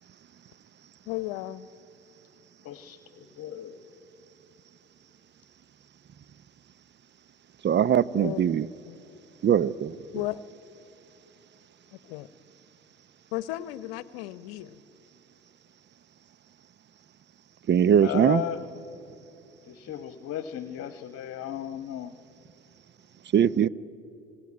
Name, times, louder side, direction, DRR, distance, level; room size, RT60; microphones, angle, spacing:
voice 1, 1.0-1.7 8.1-8.4 8.8-9.0 10.1-10.4 11.9-12.3 13.3-14.8, left 16 dB, 70° left, 19 dB, 0.9 m, -34 dB
voice 2, 2.6-3.9 18.0-18.6 19.7-22.1, left 11 dB, 50° left, 12 dB, 1.2 m, -35 dB
voice 3, 7.6-8.7 9.4-10.0 17.7-18.4 23.3-23.7, right 9 dB, 35° right, 20 dB, 0.8 m, -21 dB
26.0 x 19.0 x 9.8 m, 2.8 s
hypercardioid pair, 65°, 30 cm